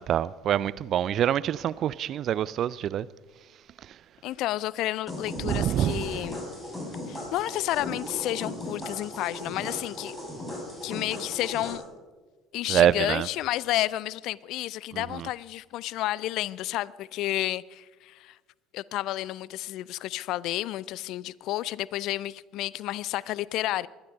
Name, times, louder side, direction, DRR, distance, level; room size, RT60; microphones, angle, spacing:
voice 1, 0.1-3.1 5.4-6.3 12.7-13.3 14.9-15.3, right 10 dB, 50° right, 0.5 m, -26 dB
voice 2, 4.2-6.4 7.1-10.1 10.8-11.8 12.5-18.4 18.7-23.9, left 15 dB, 60° left, 0.4 m, -31 dB
sound 1, 5.1-11.7, left 1 dB, 15° left, 6.8 m, -37 dB
21.0 x 12.0 x 5.4 m
figure-of-eight pair, 60°, 0 cm